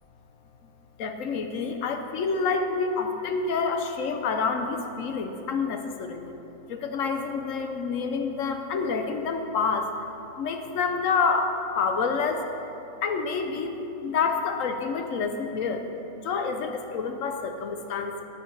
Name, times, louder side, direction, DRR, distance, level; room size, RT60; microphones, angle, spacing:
voice 1, 1.0-6.3 6.7-9.9 10.4-12.5 13.0-15.8 16.2-18.1, left 5 dB, 85° left, 5 dB, 1.1 m, -28 dB
9.3 x 6.6 x 5.4 m, 2.9 s
omnidirectional pair, 1.3 m